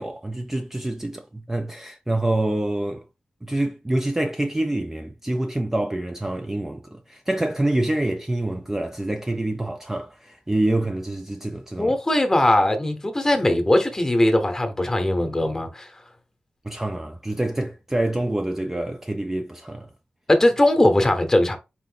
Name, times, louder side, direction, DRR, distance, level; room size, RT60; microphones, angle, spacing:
voice 1, 0.0-3.0 3.4-12.0 16.6-19.9, right 1 dB, 10° right, 0.3 m, -26 dB
voice 2, 11.8-15.9 20.3-21.6, left 1 dB, 15° left, 0.8 m, -20 dB
4.1 x 2.5 x 3.8 m
wide cardioid pair, 135°, 3 cm